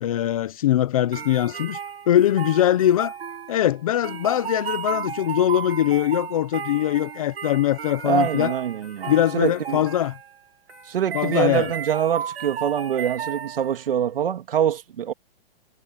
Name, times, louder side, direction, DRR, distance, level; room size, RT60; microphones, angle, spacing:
voice 1, 0.0-1.8 2.1-3.1 3.5-8.5 9.1-10.2 11.1-11.7, left 12 dB, 35° left, 1.0 m, -22 dB
sound 1, 1.1-13.9, right 7 dB, 85° right, 7.2 m, -34 dB
voice 2, 8.0-9.9 10.9-15.1, right 9 dB, 65° right, 2.8 m, -24 dB
hypercardioid pair, 175°, 30 cm